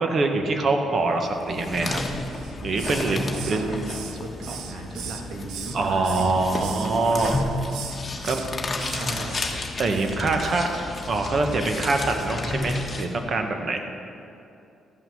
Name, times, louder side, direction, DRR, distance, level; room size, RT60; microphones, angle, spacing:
voice 1, 0.0-2.0 2.6-3.2 3.5-3.7 5.7-7.4 8.2-8.4 9.8-10.7 11.1-13.8, right 3 dB, 50° right, 5 dB, 1.3 m, -24 dB
sound 1, 1.3-13.1, left 2 dB, 30° left, 1.3 m, -32 dB
Hiss, 2.3-3.1 3.3-5.8 6.0-6.9 7.2-7.4 7.7-8.5 8.8-9.0 9.3-9.6 9.9-10.1 10.4-10.6, right 8 dB, 90° right, 0.7 m, -38 dB
voice 2, 2.9-6.3 6.9-7.5 8.1-8.2 8.8-9.4, right 2 dB, 65° right, 1 dB, 1.8 m, -37 dB
13.5 x 5.8 x 7.7 m, 2.7 s
cardioid pair, 90°, 0 cm